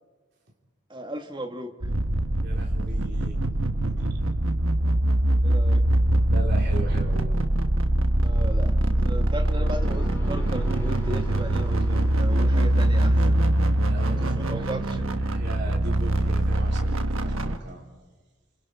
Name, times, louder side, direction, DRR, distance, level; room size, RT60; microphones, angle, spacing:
voice 1, 0.9-1.7 5.4-5.9 8.2-13.4 14.1-15.2, equal, 20° right, 5 dB, 1.6 m, -36 dB
sound 1, 1.8-17.6, right 1 dB, 75° right, 1.3 m, -23 dB
voice 2, 2.4-3.4 3.6-4.2 6.3-7.4 13.9-14.8 15.2-17.8, right 1 dB, 50° right, -1 dB, 4.1 m, -39 dB
sound 2, 9.2-13.5, right 1 dB, 10° left, 4.2 m, -41 dB
28.0 x 26.0 x 4.8 m, 1.3 s
head